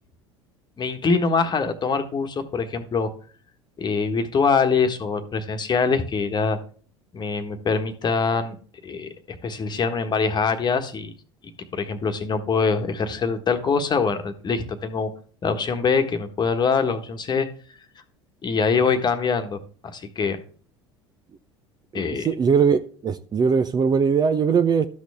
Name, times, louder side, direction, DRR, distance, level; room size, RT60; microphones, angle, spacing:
voice 1, 0.8-3.1 3.8-6.6 7.1-8.5 8.8-11.1 11.7-15.1 15.4-17.5 18.4-20.4 21.9-22.3, left 5 dB, 30° left, 1.4 m, -24 dB
voice 2, 21.9-24.9, right 6 dB, 30° right, 0.6 m, -20 dB
12.5 x 6.3 x 3.5 m
hypercardioid pair, 75°, 15 cm